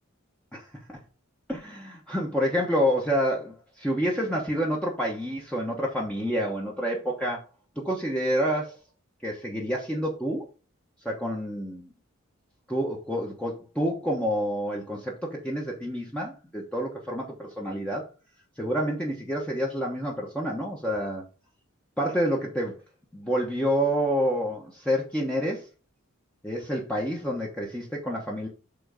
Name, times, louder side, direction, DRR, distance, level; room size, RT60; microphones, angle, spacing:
voice 1, 0.5-1.0 1.5-7.4 7.8-8.8 9.2-10.5 11.0-11.9 12.7-18.1 18.6-21.3 22.0-22.8 23.1-25.7 26.4-28.5, equal, 5° left, -3 dB, 1.0 m, -28 dB
6.9 x 3.9 x 5.1 m, 0.34 s
head